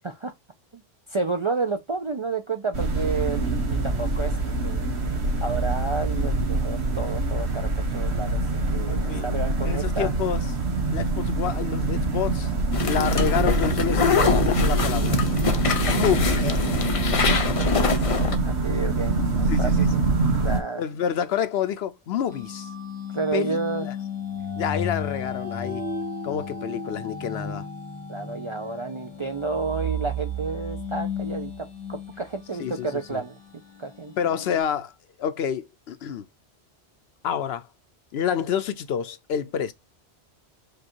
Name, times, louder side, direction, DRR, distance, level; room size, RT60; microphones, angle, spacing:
voice 1, 1.1-4.4 4.6-5.0 5.4-8.5 8.7-10.1 15.7-16.0 16.4-16.5 17.6-18.2 18.4-20.0 20.4-20.8 23.1-23.9 28.1-33.4 33.8-34.1, right 4 dB, 40° right, 0.4 m, -31 dB
sound 1, 2.7-20.6, right 2 dB, 80° right, 1.4 m, -24 dB
voice 2, 8.9-9.4 9.6-10.4 10.9-12.5 12.8-15.2 15.9-16.3 19.5-19.9 20.8-22.7 23.3-23.6 23.9-24.0 24.5-25.9 26.2-27.7 32.6-33.2 34.2-34.9 35.2-36.3 37.2-37.7 38.1-39.7, left 8 dB, 80° left, 0.9 m, -28 dB
sound 2, 12.7-18.4, left 5 dB, 40° left, 0.6 m, -25 dB
sound 3, 22.3-34.6, left 2 dB, 25° right, 2.1 m, -34 dB
5.0 x 2.3 x 4.4 m
omnidirectional pair, 1.1 m